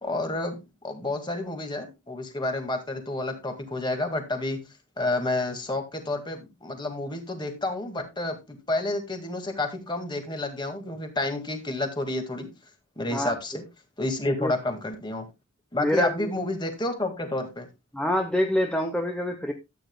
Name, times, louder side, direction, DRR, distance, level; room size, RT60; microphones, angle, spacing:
voice 1, 0.0-4.6 5.0-12.5 13.0-13.6 14.0-15.3 15.7-17.7, left 2 dB, 20° left, 6 dB, 1.9 m, -30 dB
voice 2, 15.8-16.3 17.9-19.5, equal, 5° left, 3 dB, 0.9 m, -26 dB
13.0 x 9.2 x 2.2 m, 0.23 s
head